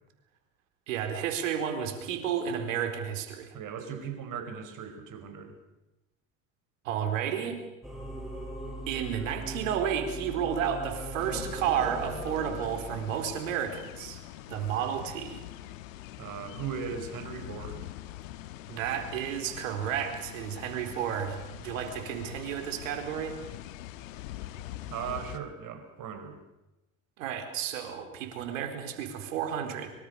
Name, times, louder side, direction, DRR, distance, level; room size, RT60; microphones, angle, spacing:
voice 1, 0.9-3.5 6.8-7.6 8.9-14.2 14.5-15.5 18.7-23.4 27.2-29.9, right 9 dB, 75° right, 6 dB, 4.1 m, -32 dB
voice 2, 3.5-5.6 16.2-17.9 24.9-26.4, right 7 dB, 55° right, 6 dB, 5.5 m, -38 dB
Singing / Musical instrument, 7.8-12.9, right 1 dB, ahead, 7.3 m, -39 dB
sound 1, 11.2-25.4, left 14 dB, 75° left, 1.5 m, -43 dB
24.0 x 23.5 x 6.8 m, 0.98 s
hypercardioid pair, 70°, 39 cm